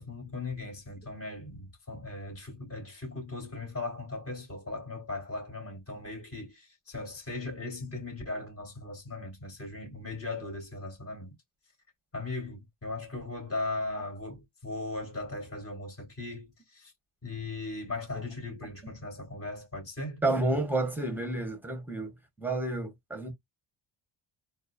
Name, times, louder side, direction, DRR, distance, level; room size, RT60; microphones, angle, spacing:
voice 1, 0.0-11.3 12.1-16.9 17.2-20.2, left 2 dB, 30° left, 3.0 m, -38 dB
voice 2, 20.2-23.3, right 2 dB, 5° right, 1.0 m, -30 dB
4.0 x 2.5 x 2.4 m
cardioid pair, 125°, 46 cm